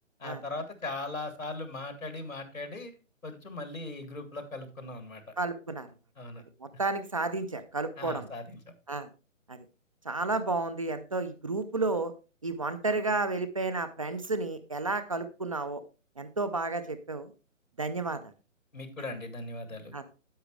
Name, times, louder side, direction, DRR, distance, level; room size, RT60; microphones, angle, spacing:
voice 1, 0.2-2.9 3.2-5.3 6.2-6.4 8.0-8.6 18.7-19.9, left 2 dB, 90° left, 8 dB, 2.2 m, -39 dB
voice 2, 5.4-5.9 6.6-8.3 8.9-9.1 9.5-9.6 10.0-12.1 12.4-15.8 16.2-17.3 17.8-18.3 19.9-20.0, right 3 dB, 25° right, 11 dB, 0.5 m, -31 dB
10.0 x 7.6 x 3.2 m, 0.32 s
figure-of-eight pair, 140°, 39 cm